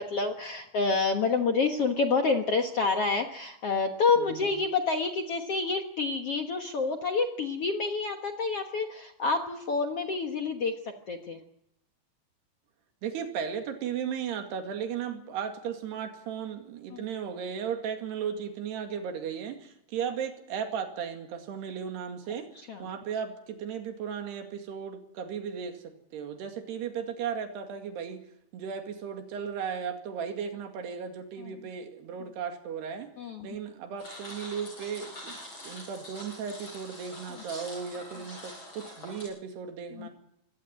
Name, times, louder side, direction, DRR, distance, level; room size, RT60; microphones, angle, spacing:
voice 1, 0.0-11.4 16.9-17.0 22.7-22.9 31.4-31.5 33.2-33.6 39.9-40.1, left 4 dB, 60° left, 5 dB, 1.5 m, -28 dB
voice 2, 4.2-4.5 13.0-22.5 22.8-25.8 26.1-28.2 28.5-33.1 33.4-35.4 35.6-40.1, right 7 dB, 85° right, 6 dB, 4.3 m, -35 dB
sound 1, 34.0-39.2, left 1 dB, 30° left, 7.9 m, -45 dB
23.5 x 17.5 x 7.7 m, 0.79 s
omnidirectional pair, 4.6 m